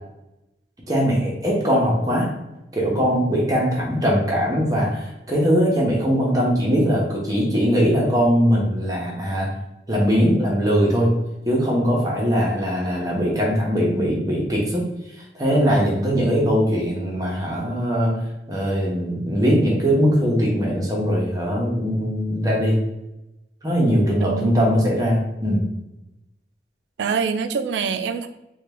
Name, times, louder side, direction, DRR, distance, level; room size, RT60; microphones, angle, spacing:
voice 1, 0.9-2.3 2.7-9.5 9.9-11.1 11.5-14.9 15.3-18.1 18.5-22.8 23.6-25.6, equal, 20° right, -2 dB, 0.8 m, -20 dB
voice 2, 24.2-24.7 27.0-28.3, right 5 dB, 80° right, 9 dB, 0.3 m, -24 dB
3.5 x 2.3 x 3.3 m, 0.94 s
head